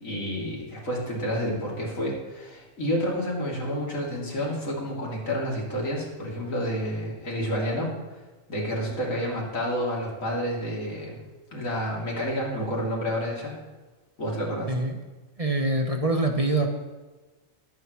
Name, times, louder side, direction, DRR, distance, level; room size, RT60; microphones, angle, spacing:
voice 1, 0.0-7.9 8.5-11.2 11.5-13.5 14.2-14.7, equal, 85° left, -4 dB, 3.6 m, -29 dB
voice 2, 14.7-15.0 15.4-16.7, right 2 dB, 30° right, 3 dB, 1.2 m, -24 dB
21.5 x 9.1 x 3.2 m, 1.2 s
omnidirectional pair, 1.3 m